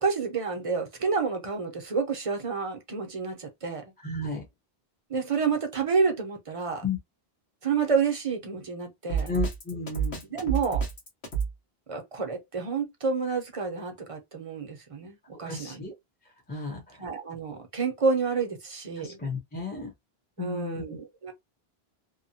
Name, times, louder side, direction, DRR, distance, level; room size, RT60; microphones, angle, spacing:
voice 1, 0.0-3.8 5.1-6.8 7.6-9.3 10.3-10.8 11.9-15.8 17.0-19.2 20.4-21.3, right 5 dB, 40° right, 0.6 m, -29 dB
voice 2, 4.0-4.4 6.8-7.0 9.3-10.2 15.4-15.9 16.5-17.0 19.0-19.9 20.4-20.8, left 3 dB, 10° left, 0.7 m, -33 dB
Drum kit, 9.1-11.5, right 6 dB, 85° left, 1.3 m, -29 dB
2.8 x 2.2 x 2.7 m
omnidirectional pair, 1.0 m